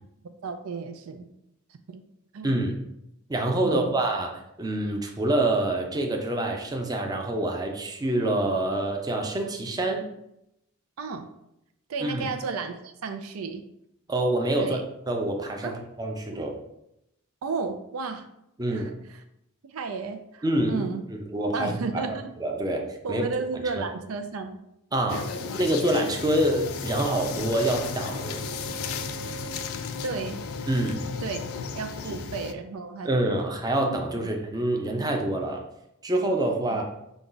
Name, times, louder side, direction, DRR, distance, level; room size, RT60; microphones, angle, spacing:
voice 1, 0.4-1.3 1.9-2.0 2.3-2.6 3.6-4.0 11.0-11.3 11.9-13.6 14.6-14.8 15.6-15.8 16.3-16.4 17.4-18.3 18.7-19.2 19.6-21.0 21.5-22.3 23.0-24.6 30.0-30.4 31.2-31.4 31.8-33.1 34.2-34.3, right 4 dB, 90° right, 7 dB, 0.5 m, -33 dB
voice 2, 2.4-2.8 3.3-4.3 4.6-10.1 12.0-12.3 14.1-14.8 15.1-16.6 18.6-18.9 20.4-20.9 21.1-22.1 22.4-23.2 23.8-23.9 24.9-25.3 25.5-28.4 30.7-31.0 32.1-32.2 33.0-35.6 36.0-36.8, right 1 dB, 20° right, 2 dB, 0.5 m, -26 dB
sound 1, 25.1-32.5, left 4 dB, 75° left, 0.4 m, -34 dB
5.1 x 2.3 x 3.8 m, 0.81 s
head